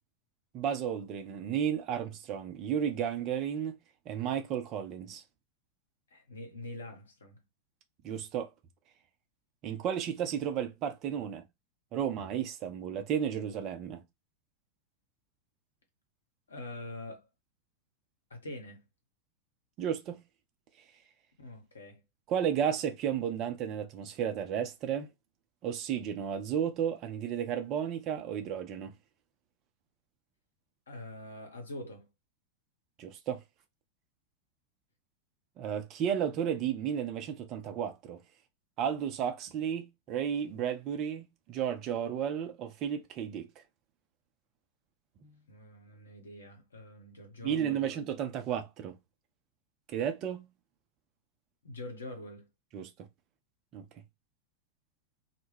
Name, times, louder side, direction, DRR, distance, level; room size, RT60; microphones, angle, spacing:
voice 1, 0.5-3.8 4.1-5.2 8.0-8.5 9.6-11.4 11.9-14.0 19.8-20.2 22.3-25.1 25.6-28.9 33.0-33.4 35.6-38.2 38.8-43.6 45.2-45.3 47.4-48.9 49.9-50.4 52.7-52.9 53.7-53.8, right 9 dB, 35° right, 0.5 m, -33 dB
voice 2, 6.1-7.4 16.5-17.3 18.3-18.8 21.4-22.0 30.9-32.1 45.5-47.9 51.6-52.5, left 1 dB, 70° left, 0.8 m, -44 dB
2.2 x 2.1 x 3.2 m
figure-of-eight pair, 90°, 0 cm